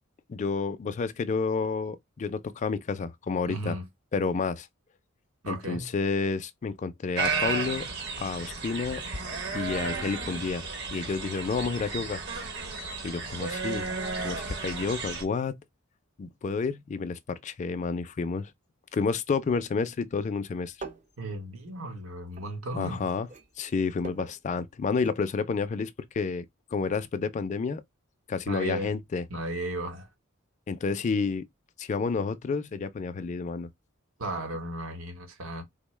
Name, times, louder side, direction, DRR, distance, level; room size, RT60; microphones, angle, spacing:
voice 1, 0.3-3.8 4.1-4.7 5.5-7.9 8.2-9.0 9.5-12.2 13.0-13.9 14.2-15.6 16.2-18.5 18.9-20.7 22.8-23.3 23.6-26.5 26.7-27.8 28.3-29.2 30.7-31.5 31.8-33.7, left 4 dB, 35° left, 0.3 m, -30 dB
voice 2, 3.5-3.9 5.4-5.9 21.2-23.1 28.5-29.0 29.3-30.1 34.2-35.6, right 1 dB, 80° right, 1.0 m, -35 dB
sound 1, 7.2-15.2, right 4 dB, 55° right, 1.0 m, -33 dB
sound 2, 20.7-23.0 23.2-25.2 25.5-25.6, right 4 dB, 35° right, 0.5 m, -45 dB
3.7 x 2.1 x 3.1 m
head